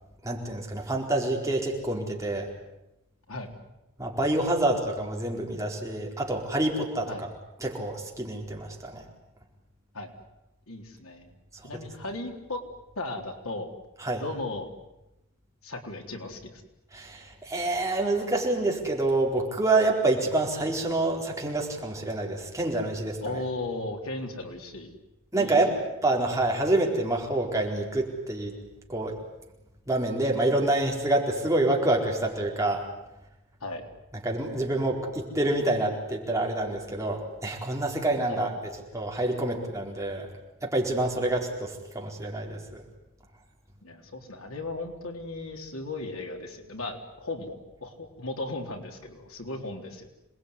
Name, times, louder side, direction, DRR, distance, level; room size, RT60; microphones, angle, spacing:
voice 1, 0.2-2.5 4.0-7.3 7.6-9.0 14.0-14.2 16.9-23.4 25.3-25.7 26.0-28.5 28.9-29.2 29.9-32.8 34.2-38.5 38.9-40.3 40.6-42.8, right 2 dB, 15° right, 0 dB, 4.5 m, -27 dB
voice 2, 10.7-11.3 11.6-12.6 13.0-13.7 14.2-14.7 15.6-16.6 23.2-24.9 25.3-25.6 33.6-33.8 38.3-38.5 43.8-50.1, left 2 dB, 80° left, 3 dB, 3.8 m, -36 dB
27.5 x 20.5 x 9.9 m, 0.92 s
head